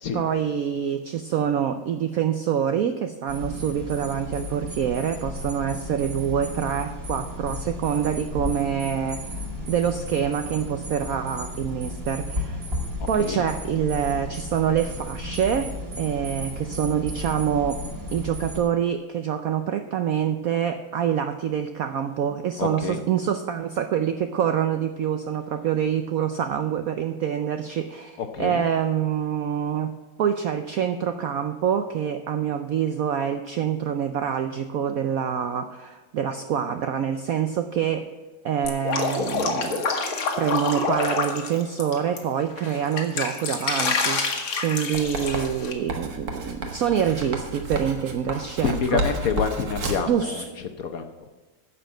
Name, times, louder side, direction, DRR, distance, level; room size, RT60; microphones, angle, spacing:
voice 1, 0.1-9.4 9.7-12.6 13.1-15.7 16.0-17.8 18.1-38.1 38.4-40.1 40.4-49.0 50.1-50.5, right 8 dB, 75° right, 9 dB, 0.8 m, -26 dB
sound 1, 3.3-18.6, left 1 dB, 30° right, 2.6 m, -34 dB
voice 2, 13.0-13.4 22.6-23.0 28.2-28.6 48.6-50.4 50.8-51.1, left 6 dB, 60° left, 7 dB, 1.0 m, -27 dB
Drip, 38.6-42.2 42.6-45.7, left 4 dB, 85° left, 2.3 m, -27 dB
Writing, 44.9-50.1, right 1 dB, 50° right, 1.9 m, -31 dB
10.5 x 7.0 x 7.6 m, 1.3 s
omnidirectional pair, 2.1 m